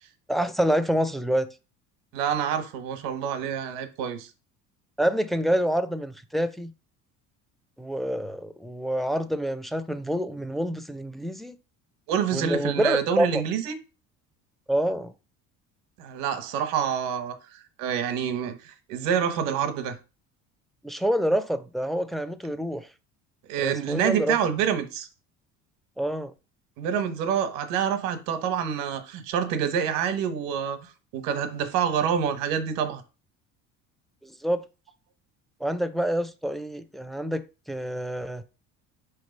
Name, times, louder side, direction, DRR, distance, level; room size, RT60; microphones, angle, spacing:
voice 1, 0.3-1.5 5.0-6.7 7.8-11.6 12.3-13.4 14.7-15.1 20.8-22.9 23.6-24.4 26.0-26.3 34.2-34.6 35.6-38.4, equal, ahead, 0.4 m, -27 dB
voice 2, 2.1-4.3 12.1-13.7 16.0-17.3 17.8-20.0 23.5-25.1 26.8-30.8 31.1-33.0, right 8 dB, 85° right, 1.2 m, -27 dB
5.5 x 3.3 x 5.3 m
cardioid pair, 120°, 32 cm